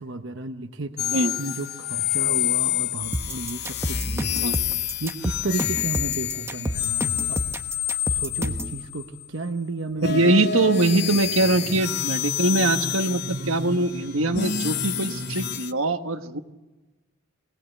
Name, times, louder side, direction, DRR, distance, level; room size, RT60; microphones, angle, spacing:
voice 1, 0.0-4.3 5.0-7.4 8.1-10.8 11.1-11.2 11.7-11.8, right 2 dB, 60° right, 5 dB, 1.1 m, -33 dB
sound 1, 1.0-9.3 10.0-15.7, left 11 dB, 50° left, 0.8 m, -28 dB
sound 2, 3.1-8.8, equal, 15° right, 1.1 m, -29 dB
voice 2, 10.0-16.4, right 2 dB, 80° right, 7 dB, 1.4 m, -22 dB
sound 3, 10.2-15.6, right 2 dB, 45° right, 0.7 m, -36 dB
23.0 x 18.5 x 8.1 m, 1.1 s
head